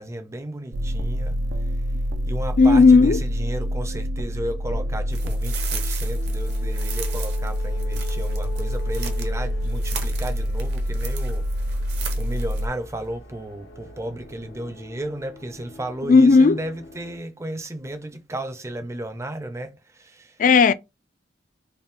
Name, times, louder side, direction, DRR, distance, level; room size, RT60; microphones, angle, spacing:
voice 1, 0.0-1.4 2.3-11.5 12.2-20.4, right 1 dB, 15° right, 0.5 m, -34 dB
sound 1, 0.7-12.7, equal, 85° right, 0.6 m, -26 dB
voice 2, 2.6-3.2 16.1-16.6 20.4-20.7, left 4 dB, 45° left, 0.3 m, -13 dB
sound 2, 4.4-17.2, left 2 dB, 75° left, 0.9 m, -42 dB
sound 3, 5.1-9.3 9.6-12.6, right 7 dB, 60° right, 0.9 m, -37 dB
4.0 x 2.2 x 3.6 m
head